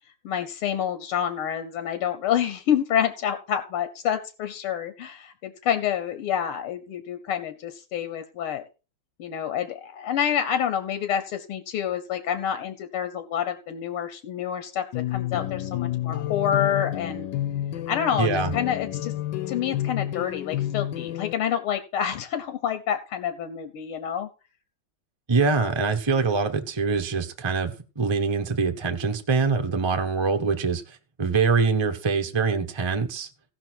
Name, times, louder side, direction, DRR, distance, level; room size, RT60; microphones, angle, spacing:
voice 1, 0.2-8.6 9.2-17.3 17.9-19.1 19.5-24.3, left 9 dB, 85° left, 10 dB, 1.9 m, -28 dB
sound 1, 14.9-21.3, left 13 dB, 65° left, 1.4 m, -30 dB
voice 2, 18.2-18.5 25.3-33.3, right 4 dB, 30° right, 6 dB, 0.5 m, -24 dB
16.5 x 6.1 x 4.5 m, 0.32 s
omnidirectional pair, 2.4 m